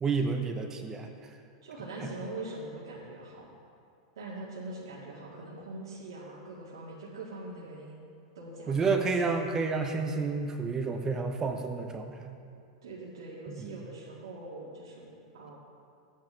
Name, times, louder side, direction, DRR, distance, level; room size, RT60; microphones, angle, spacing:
voice 1, 0.0-1.1 2.0-2.1 8.7-12.4 13.5-13.7, right 4 dB, 20° right, 4 dB, 0.9 m, -30 dB
voice 2, 1.6-3.5 4.2-8.1 8.3-9.0 12.8-15.6, right 2 dB, 80° right, -6 dB, 2.1 m, -42 dB
14.0 x 9.4 x 3.4 m, 2.4 s
hypercardioid pair, 110°, 2 cm